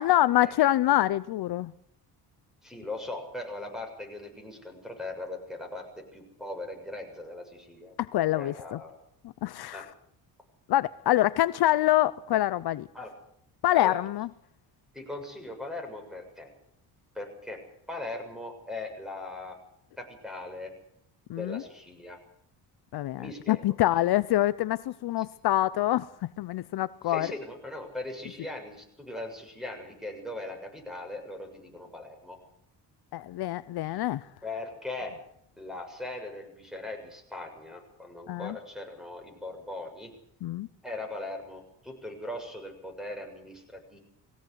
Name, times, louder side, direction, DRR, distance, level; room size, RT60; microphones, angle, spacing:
voice 1, 0.0-1.7 8.0-8.8 9.4-9.9 10.7-12.9 13.6-14.3 21.3-21.6 22.9-27.3 33.1-34.3 38.3-38.6 40.4-40.7, left 14 dB, 65° left, 0.8 m, -26 dB
voice 2, 2.6-8.0 8.3-9.0 9.7-9.9 12.9-13.1 13.7-14.0 14.9-16.5 17.2-17.6 17.9-19.6 20.0-20.7 21.3-22.2 23.2-23.6 27.1-32.4 33.9-34.0 34.4-35.2 35.6-40.1 40.8-44.0, left 2 dB, ahead, 6.9 m, -39 dB
21.0 x 17.0 x 8.1 m
cardioid pair, 100°, 41 cm